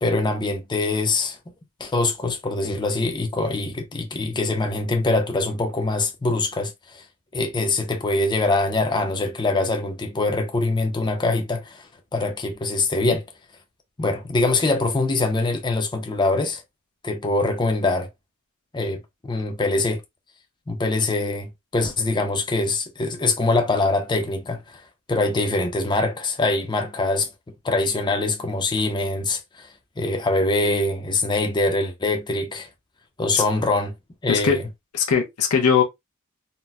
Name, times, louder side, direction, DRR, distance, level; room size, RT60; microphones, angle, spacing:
voice 1, 0.0-1.4 1.8-7.0 7.3-13.2 14.0-16.6 17.0-18.1 18.7-20.0 20.7-24.8 25.1-27.3 27.6-29.7 30.0-32.7 33.2-33.9 34.2-34.7, left 2 dB, 20° left, 0.5 m, -23 dB
voice 2, 34.3-34.6 34.9-35.8, left 6 dB, 90° left, 0.7 m, -20 dB
4.0 x 2.0 x 2.2 m
head